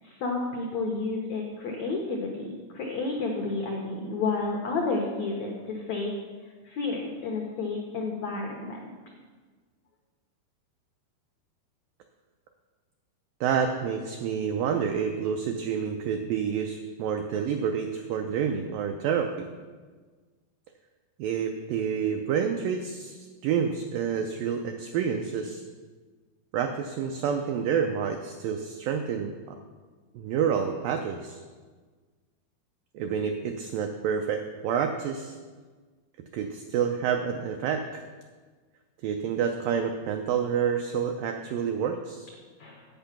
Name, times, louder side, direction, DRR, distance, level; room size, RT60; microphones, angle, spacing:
voice 1, 0.0-6.1 6.6-8.9 42.6-42.8, left 3 dB, 85° left, 1 dB, 1.5 m, -31 dB
voice 2, 13.4-19.5 21.2-25.6 26.5-29.6 30.1-31.4 32.9-35.4 36.3-38.0 39.0-42.3, right 7 dB, 85° right, 5 dB, 1.9 m, -28 dB
8.7 x 8.1 x 5.8 m, 1.4 s
omnidirectional pair, 4.6 m